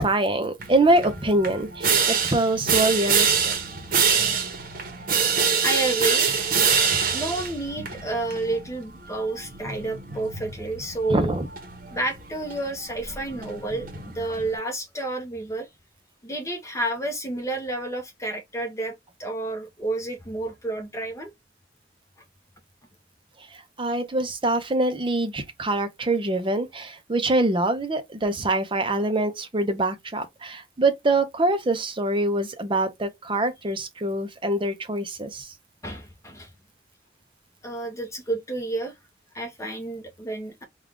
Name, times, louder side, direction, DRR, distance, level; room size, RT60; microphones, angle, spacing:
voice 1, 0.0-3.6 11.1-11.5 23.8-35.5, right 2 dB, 30° right, 0.6 m, -24 dB
sound 1, 0.6-14.6, right 6 dB, 50° right, 0.9 m, -26 dB
voice 2, 5.6-6.4 7.1-11.3 11.9-15.7 16.2-18.9 19.2-21.3 35.8-36.5 37.6-38.9 39.3-40.6, right 2 dB, 15° left, 0.9 m, -30 dB
3.5 x 2.4 x 3.6 m
head